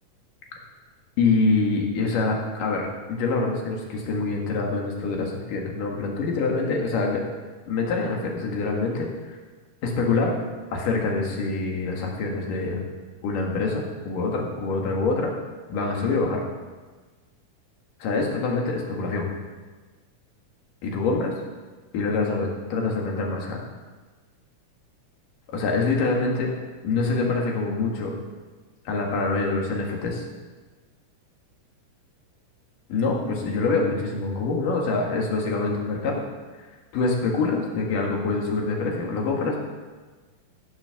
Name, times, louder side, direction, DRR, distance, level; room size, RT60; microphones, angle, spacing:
voice 1, 1.2-7.2 7.7-9.4 9.8-10.4 10.7-12.8 13.2-15.3 15.7-16.4 18.0-19.3 20.8-21.3 21.9-23.6 25.5-26.5 26.8-28.1 28.9-30.2 32.9-36.2 36.6-36.7 36.9-39.6, left 3 dB, 80° left, 0 dB, 3.4 m, -25 dB
14.5 x 6.7 x 7.0 m, 1.3 s
omnidirectional pair, 3.7 m